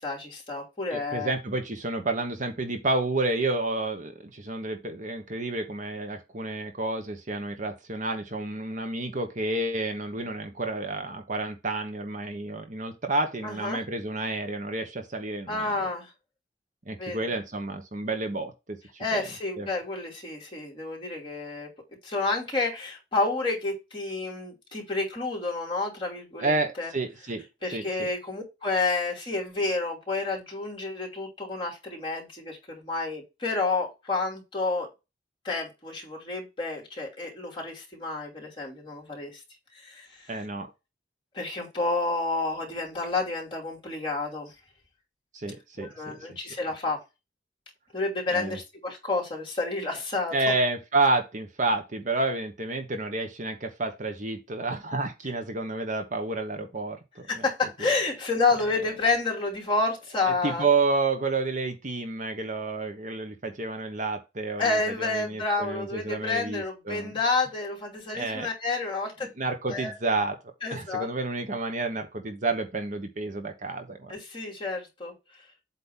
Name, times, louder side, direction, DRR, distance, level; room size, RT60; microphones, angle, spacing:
voice 1, 0.0-1.3 13.4-13.8 15.5-16.1 17.0-17.3 19.0-21.7 22.0-26.9 27.6-34.9 35.4-39.4 39.7-40.3 41.3-44.5 45.8-47.0 47.9-50.3 57.3-60.6 64.6-69.3 69.7-69.9 70.6-71.1 74.1-75.1, left 3 dB, 30° left, 2.9 m, -30 dB
voice 2, 0.9-15.8 16.9-19.2 19.6-19.7 26.4-27.4 27.7-28.1 40.3-40.7 45.3-46.2 48.3-48.6 50.3-57.3 57.8-57.9 60.4-67.1 68.1-68.5 69.4-70.4 70.7-74.2, right 3 dB, 45° right, 1.1 m, -30 dB
8.1 x 2.9 x 5.6 m
head